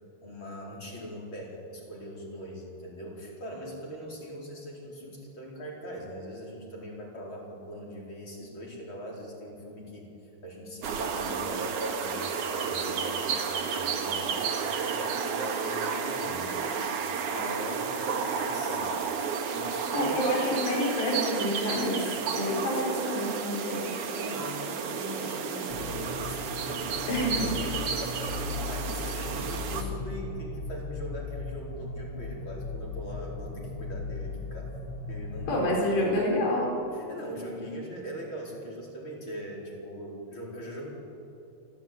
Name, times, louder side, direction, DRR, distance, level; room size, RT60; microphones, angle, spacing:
voice 1, 0.2-10.1 10.4-16.9 17.3-18.9 19.5-20.8 24.1-34.8 35.1-36.1 36.9-40.9, equal, 30° left, -2 dB, 5.0 m, -41 dB
sound 1, 10.8-29.8, right 6 dB, 55° right, 2.7 m, -32 dB
voice 2, 19.9-22.0 22.3-24.0 27.1-27.4 35.5-36.7, left 1 dB, 80° left, -2 dB, 7.0 m, -28 dB
sound 2, 25.7-35.7, left 4 dB, 50° left, 1.9 m, -37 dB
26.5 x 15.5 x 9.5 m, 2.8 s
omnidirectional pair, 4.8 m